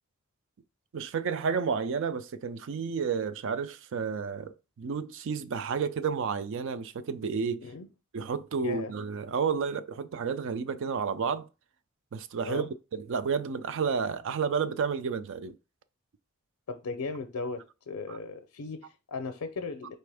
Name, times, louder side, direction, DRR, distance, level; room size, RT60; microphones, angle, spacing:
voice 1, 0.9-7.6 8.1-11.5 12.1-15.5 18.1-18.2, right 6 dB, 60° right, 0.4 m, -31 dB
voice 2, 8.6-8.9 12.5-12.7 16.7-20.0, left 4 dB, 80° left, 0.5 m, -37 dB
4.3 x 3.4 x 3.4 m
head